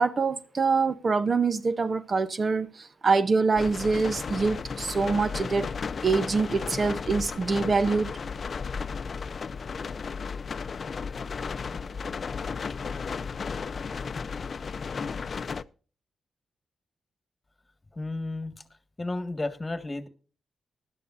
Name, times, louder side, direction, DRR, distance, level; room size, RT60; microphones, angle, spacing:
voice 1, 0.0-5.7 6.0-8.1, right 4 dB, 45° right, 0.8 m, -25 dB
sound 1, 3.5-15.6, left 5 dB, 55° left, 0.5 m, -34 dB
voice 2, 17.9-18.6 19.0-20.1, left 2 dB, 25° left, 1.7 m, -32 dB
19.5 x 12.0 x 2.6 m
cardioid pair, 55°, 0 cm